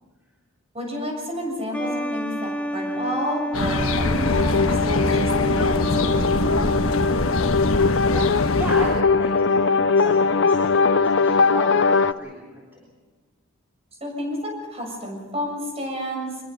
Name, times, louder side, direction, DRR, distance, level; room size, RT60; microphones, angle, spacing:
voice 1, 0.7-6.9 14.0-16.4, equal, 30° right, 1 dB, 7.1 m, -31 dB
sound 1, 1.7-8.0, equal, 5° left, 0.8 m, -30 dB
sound 2, 3.5-9.0, left 2 dB, 75° left, 1.4 m, -24 dB
sound 3, 4.2-12.1, left 4 dB, 60° left, 0.7 m, -21 dB
voice 2, 8.0-11.8 12.2-12.9, equal, 10° right, -5 dB, 3.8 m, -34 dB
25.0 x 21.5 x 5.7 m, 1.3 s
head